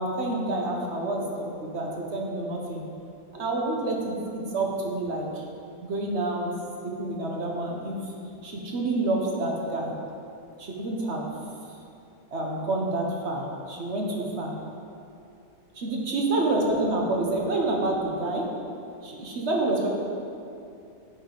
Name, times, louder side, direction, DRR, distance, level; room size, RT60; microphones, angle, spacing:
voice 1, 0.0-2.8 3.3-5.4 5.8-6.5 6.8-8.0 8.4-9.9 10.6-11.3 12.3-14.5 15.7-18.5 19.0-19.9, right 2 dB, 45° right, -1 dB, 1.1 m, -28 dB
9.8 x 5.3 x 3.9 m, 2.6 s
omnidirectional pair, 1.8 m